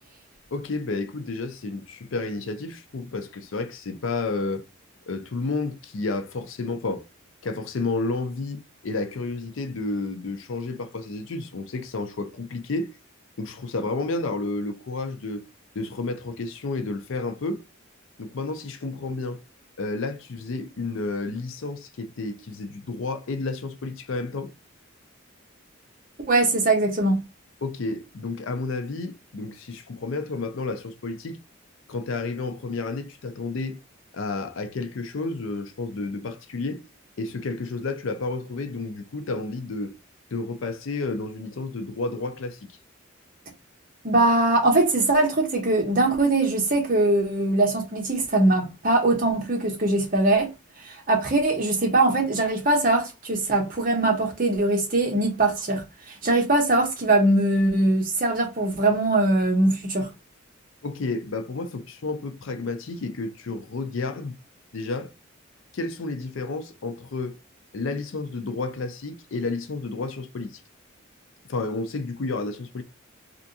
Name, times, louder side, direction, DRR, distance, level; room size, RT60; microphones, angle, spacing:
voice 1, 0.5-4.6 5.1-7.0 7.4-12.9 13.4-15.4 15.7-17.6 18.2-19.4 19.8-24.5 27.6-31.4 31.9-33.8 34.1-36.8 37.2-39.9 40.3-42.8 60.8-64.3 64.7-65.1 65.7-67.4 67.7-70.6 71.5-72.8, left 3 dB, 70° left, 0.5 m, -31 dB
voice 2, 26.3-27.2 44.0-50.5 50.8-60.1, right 2 dB, 40° right, 0.9 m, -21 dB
3.4 x 2.5 x 2.7 m
head